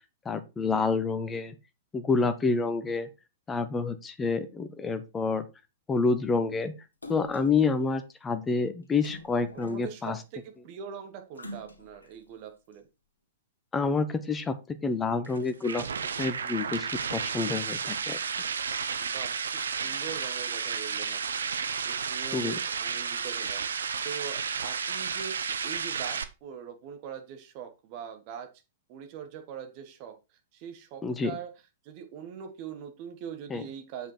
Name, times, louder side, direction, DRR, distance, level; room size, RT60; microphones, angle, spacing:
voice 1, 0.2-1.5 1.9-3.1 3.5-5.5 5.9-6.7 7.1-10.2 13.7-15.9 16.2-18.2 22.3-22.6 31.0-31.3 33.5-33.6, left 4 dB, 15° left, 11 dB, 1.0 m, -28 dB
Splash splatter, 7.0-7.6 9.0-10.2 11.3-12.1 12.7-12.8, left 1 dB, 80° left, 1.6 m, -45 dB
voice 2, 9.5-12.9 19.0-21.5 21.8-23.7 24.0-28.5 28.9-31.5 31.8-34.1, right 7 dB, 40° right, 7 dB, 1.6 m, -42 dB
sound 1, 15.2-26.2, right 6 dB, 70° right, 0.7 m, -32 dB
7.6 x 5.3 x 4.4 m, 0.27 s
figure-of-eight pair, 105°, 0 cm